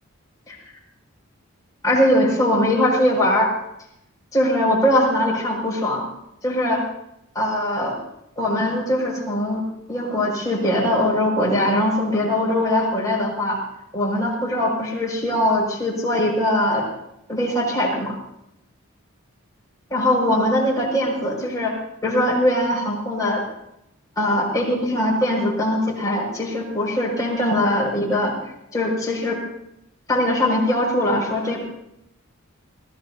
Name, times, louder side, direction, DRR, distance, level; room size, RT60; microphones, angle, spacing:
voice 1, 1.8-3.5 4.3-6.0 6.4-6.8 7.3-7.9 8.4-13.6 13.9-16.8 17.3-18.2 19.9-23.4 24.2-28.3 28.7-29.4 30.1-31.7, left 1 dB, 15° left, -3 dB, 5.6 m, -21 dB
29.5 x 16.0 x 2.8 m, 0.80 s
head